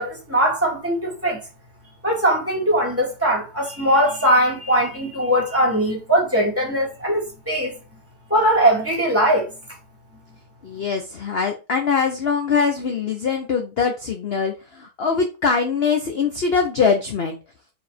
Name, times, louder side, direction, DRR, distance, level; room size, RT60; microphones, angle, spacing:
voice 1, 0.0-1.4 2.0-7.8 8.3-9.5, equal, 5° right, 2.4 m, -20 dB
voice 2, 10.6-17.4, left 5 dB, 50° left, 0.8 m, -22 dB
4.8 x 4.2 x 5.0 m
omnidirectional pair, 2.0 m